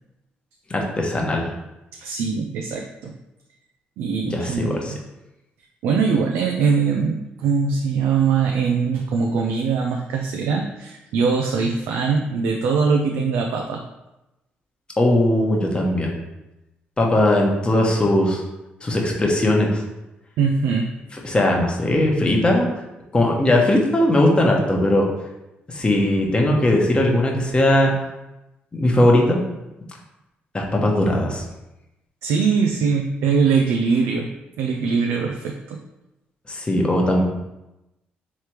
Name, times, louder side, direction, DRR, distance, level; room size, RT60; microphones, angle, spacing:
voice 1, 0.7-1.5 4.2-4.9 15.0-16.1 17.0-18.4 18.8-19.8 21.2-22.7 23.1-25.1 25.7-27.9 28.7-29.4 30.5-31.4 36.5-37.2, left 1 dB, 25° left, 0 dB, 1.0 m, -19 dB
voice 2, 2.0-3.1 4.0-5.0 5.8-13.8 20.4-20.9 32.2-34.3 34.6-35.8, right 5 dB, 85° right, 2 dB, 0.4 m, -22 dB
3.3 x 3.1 x 4.4 m, 0.96 s
cardioid pair, 75°, 4 cm